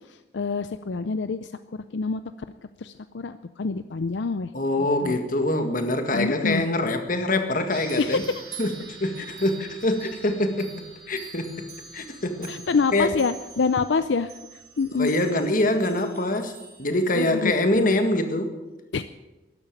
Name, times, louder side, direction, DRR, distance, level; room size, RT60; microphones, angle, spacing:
voice 1, 0.1-2.2 2.8-4.5 4.8-5.2 6.1-6.6 8.0-8.4 12.5-15.1 17.2-18.0 18.9-19.0, left 4 dB, 75° left, 12 dB, 0.5 m, -27 dB
voice 2, 4.5-8.2 8.6-10.7 11.1-11.7 11.9-12.6 12.9-13.1 15.0-16.5 16.8-18.6, left 1 dB, 50° left, 7 dB, 1.7 m, -24 dB
sound 1, 7.7-17.4, right 6 dB, 60° right, 5.2 m, -45 dB
13.0 x 11.0 x 9.0 m, 1.1 s
head